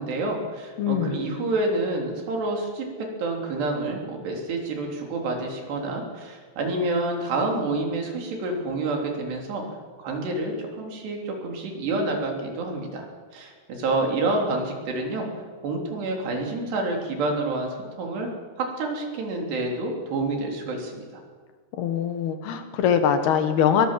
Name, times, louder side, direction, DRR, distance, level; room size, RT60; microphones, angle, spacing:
voice 1, 0.0-2.9 3.2-9.6 10.0-13.1 13.3-18.3 18.6-21.1, right 2 dB, 85° right, 1 dB, 5.5 m, -28 dB
voice 2, 0.8-1.2 21.8-23.9, left 8 dB, 75° left, 8 dB, 3.5 m, -22 dB
22.0 x 19.0 x 7.6 m, 1.5 s
omnidirectional pair, 4.7 m